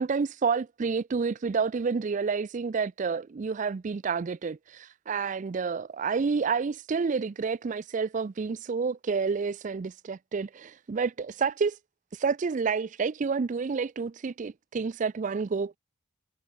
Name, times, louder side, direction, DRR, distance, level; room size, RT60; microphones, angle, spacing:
voice 1, 0.0-11.8 12.1-15.7, right 5 dB, 40° right, 0.4 m, -29 dB
head